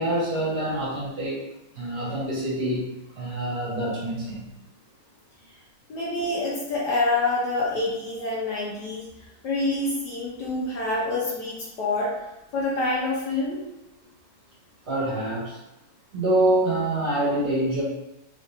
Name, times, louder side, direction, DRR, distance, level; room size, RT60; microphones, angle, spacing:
voice 1, 0.0-1.4 1.7-2.9 3.1-4.5 14.9-15.6 16.1-17.8, right 1 dB, 55° right, -8 dB, 2.0 m, -25 dB
voice 2, 5.9-9.1 9.4-12.1 12.5-13.6, left 2 dB, 65° left, -4 dB, 1.3 m, -26 dB
4.0 x 3.4 x 2.6 m, 0.93 s
omnidirectional pair, 2.2 m